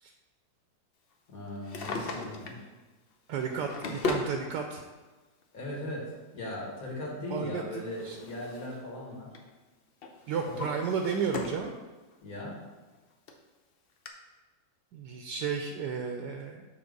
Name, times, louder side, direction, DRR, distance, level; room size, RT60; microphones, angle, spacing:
voice 1, 1.3-2.6 5.5-6.1 6.3-9.3 10.4-10.7 12.2-12.6, left 1 dB, 50° left, -3 dB, 2.1 m, -38 dB
Drawer open or close, 1.5-2.7 3.4-4.3 5.4-5.5 7.3-8.8 9.1-9.5 10.0-11.7 12.1-12.2 12.9-13.0 13.3-13.4 14.1-14.2, left 3 dB, 75° left, 0.5 m, -37 dB
voice 2, 3.3-4.8 7.3-8.2 10.3-11.7 14.9-16.7, right 6 dB, 75° right, 4 dB, 1.1 m, -33 dB
7.0 x 3.7 x 5.2 m, 1.3 s
omnidirectional pair, 1.9 m